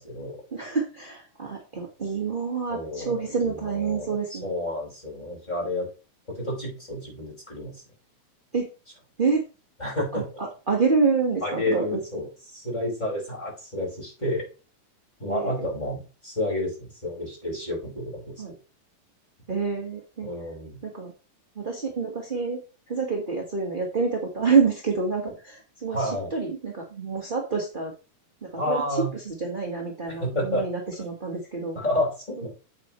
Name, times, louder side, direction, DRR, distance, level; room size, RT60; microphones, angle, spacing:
voice 1, 0.0-0.4 2.7-5.9 6.4-7.7 9.8-10.2 11.4-14.4 15.2-18.4 20.2-20.8 25.9-26.3 28.6-29.1 30.2-30.6 31.7-32.5, left 1 dB, 15° left, -3 dB, 5.3 m, -30 dB
voice 2, 0.5-4.5 8.5-8.7 9.2-9.4 10.1-12.0 15.3-15.7 18.4-18.5 19.5-20.3 20.8-21.1 21.5-22.6 22.9-27.9 28.4-31.8, right 5 dB, 30° right, -1 dB, 0.9 m, -27 dB
9.0 x 8.8 x 3.1 m, 0.33 s
omnidirectional pair, 3.4 m